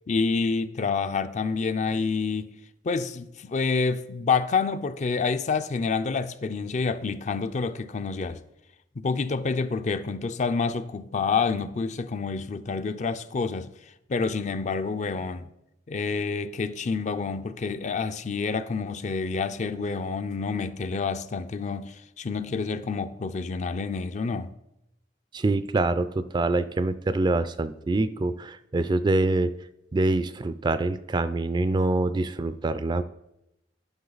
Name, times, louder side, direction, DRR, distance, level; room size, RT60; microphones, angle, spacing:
voice 1, 0.1-2.5 2.8-8.4 9.0-13.7 14.1-15.5 15.9-24.5, left 4 dB, 40° left, 0.4 m, -28 dB
voice 2, 25.3-29.5 29.9-33.0, right 2 dB, 25° right, 0.3 m, -25 dB
10.5 x 5.7 x 3.9 m
head